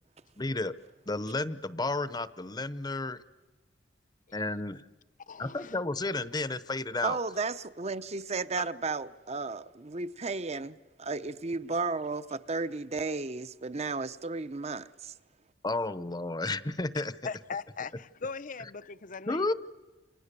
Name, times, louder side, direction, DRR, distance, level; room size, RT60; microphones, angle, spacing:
voice 1, 0.4-0.7 1.1-3.2 4.3-4.9 5.4-7.2 15.6-17.1 19.3-19.5, left 2 dB, 25° left, 0.9 m, -32 dB
voice 2, 5.3-5.8 8.6-8.7 17.2-19.5, left 5 dB, 50° left, 0.8 m, -39 dB
voice 3, 7.0-15.1, right 3 dB, 35° right, 0.9 m, -34 dB
29.5 x 27.0 x 6.9 m
head